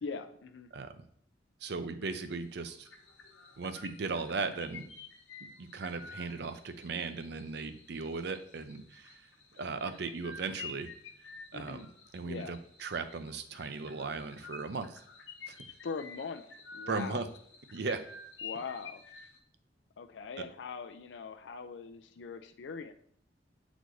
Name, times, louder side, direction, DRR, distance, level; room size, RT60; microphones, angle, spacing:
voice 1, 0.0-0.7 11.5-11.8 12.2-12.5 15.8-16.5 16.7-17.3 18.4-19.0 20.0-22.9, left 5 dB, 70° left, 8 dB, 0.4 m, -41 dB
voice 2, 0.7-1.0 1.6-2.9 3.6-4.9 5.6-9.2 9.5-10.9 11.2-11.9 12.1-15.0 15.5-15.6 16.9-17.3 17.7-18.0, right 4 dB, 65° right, 10 dB, 0.6 m, -37 dB
sound 1, 2.0-2.3 2.6-19.4, left 4 dB, 90° left, 0.9 m, -50 dB
8.0 x 4.1 x 3.1 m, 0.62 s
head